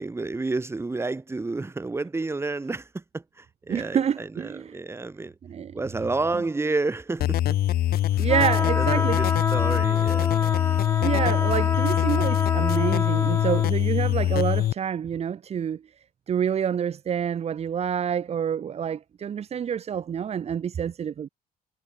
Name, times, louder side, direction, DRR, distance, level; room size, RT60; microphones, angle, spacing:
voice 1, 0.0-5.3 5.7-7.4 8.8-10.5, right 3 dB, 15° right, 2.0 m, -30 dB
voice 2, 3.7-4.8 5.4-5.7 8.2-9.4 11.0-15.8 16.3-21.3, right 8 dB, 40° right, 0.9 m, -27 dB
sound 1, 7.2-14.7, left 13 dB, 65° left, 1.2 m, -23 dB
sound 2, 8.3-13.7, left 3 dB, 15° left, 0.9 m, -28 dB
cardioid pair, 110°, 17 cm